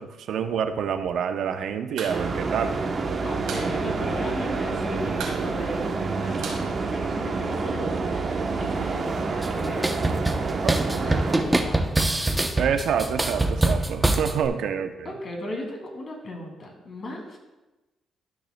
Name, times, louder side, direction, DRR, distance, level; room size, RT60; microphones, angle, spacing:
voice 1, 0.0-2.8 10.6-10.8 12.6-15.1, right 7 dB, 70° right, 8 dB, 0.6 m, -27 dB
sound 1, 1.9-2.2 2.4-2.5 2.8-3.7 4.0-4.1 4.4-4.8 5.1-7.5, right 5 dB, 90° right, 1.9 m, -37 dB
sound 2, 2.1-11.4, right 4 dB, 45° right, 0.9 m, -28 dB
voice 2, 3.2-11.8 15.0-17.4, left 1 dB, 45° left, 0 dB, 2.5 m, -36 dB
sound 3, 9.4-14.5, right 2 dB, 15° right, 0.7 m, -25 dB
13.0 x 6.5 x 2.2 m, 1.1 s
cardioid pair, 90°, 0 cm